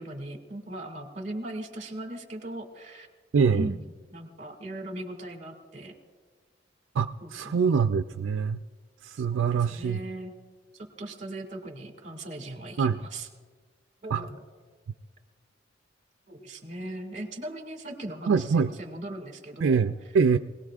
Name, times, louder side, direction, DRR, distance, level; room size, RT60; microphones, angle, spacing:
voice 1, 0.0-3.1 3.5-3.8 4.1-5.9 7.2-7.6 9.2-10.3 10.7-13.3 14.0-14.4 16.3-19.8, right 1 dB, 40° right, 3 dB, 2.1 m, -38 dB
voice 2, 3.3-3.7 6.9-8.6 9.0-10.0 12.8-13.0 14.1-14.2 18.3-18.7 19.6-20.4, right 6 dB, 80° right, 9 dB, 0.4 m, -24 dB
24.5 x 18.0 x 2.4 m, 1.5 s
head